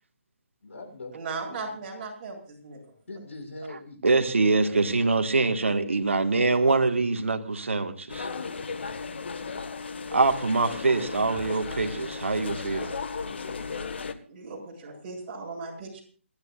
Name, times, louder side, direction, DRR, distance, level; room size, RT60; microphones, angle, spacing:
voice 1, 0.6-1.1 1.7-1.8 3.1-5.6, left 2 dB, 75° left, 6.9 m, -43 dB
voice 2, 1.1-2.8 14.3-16.0, right 4 dB, 25° right, 7.7 m, -37 dB
voice 3, 3.7-8.3 10.1-12.9, right 3 dB, 70° right, 1.7 m, -24 dB
sound 1, 8.1-14.1, left 4 dB, 55° left, 1.7 m, -35 dB
28.5 x 12.0 x 2.5 m
figure-of-eight pair, 150°, 7 cm